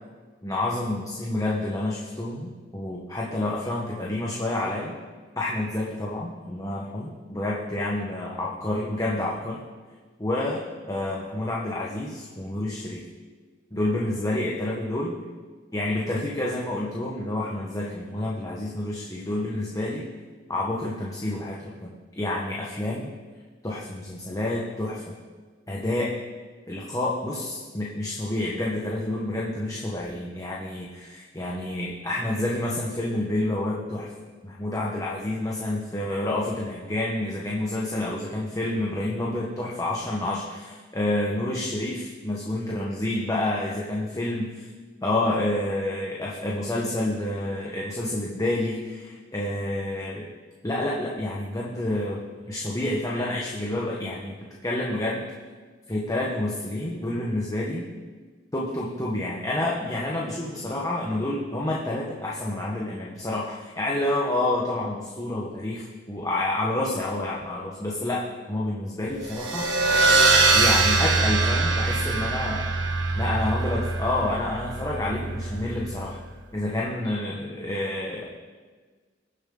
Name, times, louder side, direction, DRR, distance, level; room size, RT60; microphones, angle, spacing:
voice 1, 0.4-4.9 5.4-9.6 10.2-10.6 10.9-13.0 13.7-15.2 15.7-20.1 20.5-23.1 23.6-25.2 25.7-26.1 26.7-34.1 34.4-44.5 45.0-50.3 50.6-54.4 54.6-55.2 55.9-57.9 58.5-69.7 70.5-72.7 73.1-76.2 76.5-78.3, left 1 dB, 20° left, -4 dB, 1.3 m, -29 dB
sound 1, 69.2-76.2, right 3 dB, 70° right, 1.8 m, -23 dB
21.5 x 7.4 x 3.9 m, 1.4 s
head